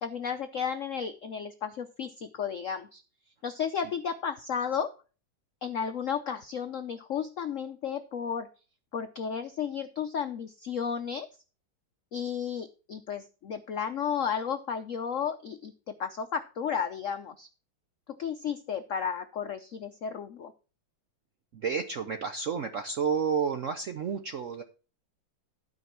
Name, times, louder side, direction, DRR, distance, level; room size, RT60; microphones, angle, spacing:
voice 1, 0.0-3.0 3.4-4.9 5.6-8.5 8.9-11.3 12.1-17.5 18.2-20.5, left 7 dB, 80° left, 9 dB, 0.7 m, -33 dB
voice 2, 21.5-24.6, right 6 dB, 70° right, 8 dB, 0.7 m, -30 dB
12.5 x 5.2 x 5.8 m, 0.34 s
omnidirectional pair, 2.2 m